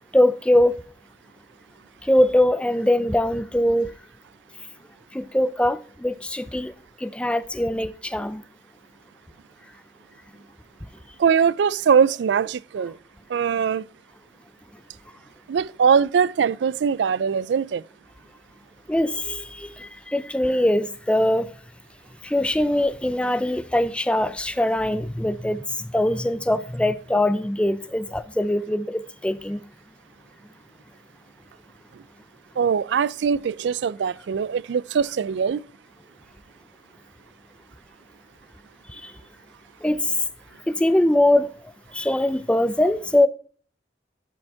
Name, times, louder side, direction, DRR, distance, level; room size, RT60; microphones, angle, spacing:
voice 1, 0.1-0.7 2.0-3.9 5.1-6.7 7.0-8.4 18.9-21.5 22.2-29.6 38.9-39.1 39.8-40.2 40.7-41.5 41.9-43.3, left 1 dB, 5° left, 0.4 m, -22 dB
voice 2, 11.2-13.0 13.3-13.8 15.5-17.8 32.6-35.6, right 6 dB, 80° right, 0.3 m, -21 dB
11.5 x 5.3 x 3.5 m
head